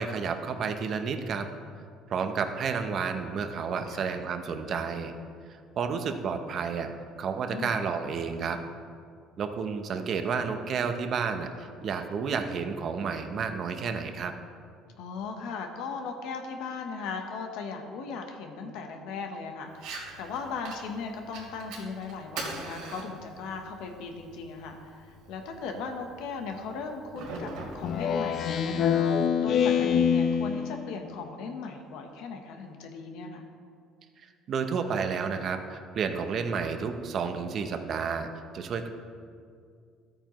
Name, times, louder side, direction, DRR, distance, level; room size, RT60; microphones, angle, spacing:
voice 1, 0.0-1.5 2.1-5.1 5.8-6.9 7.2-8.6 9.4-14.3 34.5-38.3 38.5-38.9, right 5 dB, 40° right, 7 dB, 0.7 m, -31 dB
voice 2, 15.0-33.4, left 4 dB, 80° left, 4 dB, 1.0 m, -38 dB
Fire, 19.7-28.7, right 3 dB, 85° right, 2.8 m, -43 dB
Speech synthesizer, 27.8-30.9, left 7 dB, 45° left, 0.5 m, -25 dB
14.0 x 8.8 x 3.1 m, 2.2 s
cardioid pair, 150°, 0 cm